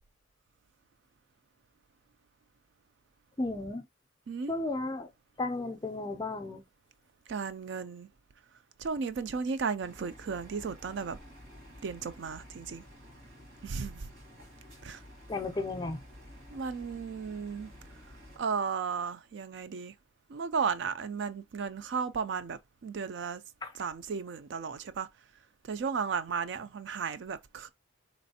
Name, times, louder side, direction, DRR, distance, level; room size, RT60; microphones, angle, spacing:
voice 1, 3.4-3.9 4.5-5.1 5.4-6.6 15.3-16.0 23.6-23.7, left 2 dB, 20° left, 0.4 m, -34 dB
voice 2, 7.3-8.1 8.8-11.2 11.8-12.8 13.6-14.1 14.8-15.0 16.5-17.7 18.4-19.9 20.3-23.4 23.7-25.1 25.7-27.7, right 5 dB, 60° right, 0.4 m, -34 dB
sound 1, 9.8-18.4, equal, 75° right, 1.7 m, -52 dB
4.1 x 3.0 x 2.7 m
head